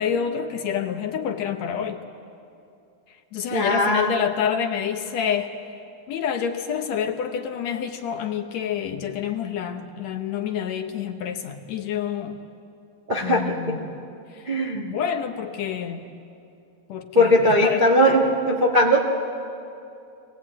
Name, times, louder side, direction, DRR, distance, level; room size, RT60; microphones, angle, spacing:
voice 1, 0.0-2.0 3.3-5.5 6.1-12.4 13.2-14.0 14.3-14.4 14.7-16.0 16.9-17.8, left 8 dB, 70° left, 6 dB, 1.9 m, -28 dB
voice 2, 3.5-4.1 13.1-13.8 14.5-14.9 17.1-19.0, left 1 dB, 45° right, -2 dB, 0.5 m, -19 dB
23.0 x 17.5 x 8.6 m, 2.6 s
omnidirectional pair, 3.7 m